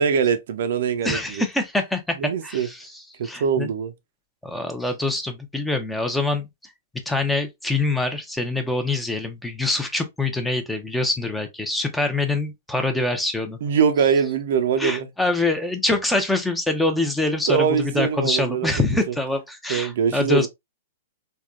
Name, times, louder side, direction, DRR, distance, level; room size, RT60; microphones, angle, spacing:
voice 1, 0.0-1.4 2.2-2.7 3.2-3.9 13.6-15.1 17.5-18.7 19.1-19.2 19.7-20.5, right 6 dB, 65° right, 0.5 m, -22 dB
voice 2, 1.0-2.2 2.4-2.9 3.2-3.7 4.4-6.5 7.1-13.6 14.8-20.5, left 2 dB, 5° left, 0.6 m, -24 dB
3.4 x 2.2 x 2.4 m
hypercardioid pair, 120°, 0 cm